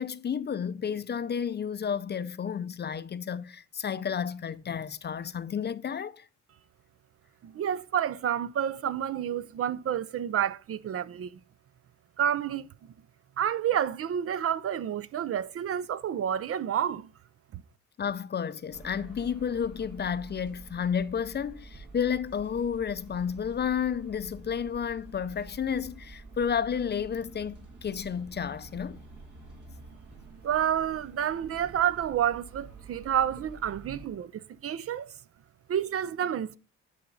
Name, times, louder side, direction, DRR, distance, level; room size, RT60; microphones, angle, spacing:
voice 1, 0.0-6.3 18.0-29.0, left 7 dB, 35° left, 0.5 m, -31 dB
voice 2, 7.4-11.3 12.2-12.7 13.4-17.1 17.5-17.6 30.4-35.1 35.7-36.6, right 9 dB, 50° right, 0.5 m, -29 dB
sound 1, 18.7-34.1, right 3 dB, 70° right, 2.6 m, -48 dB
10.0 x 5.7 x 3.9 m
cardioid pair, 90°, 30 cm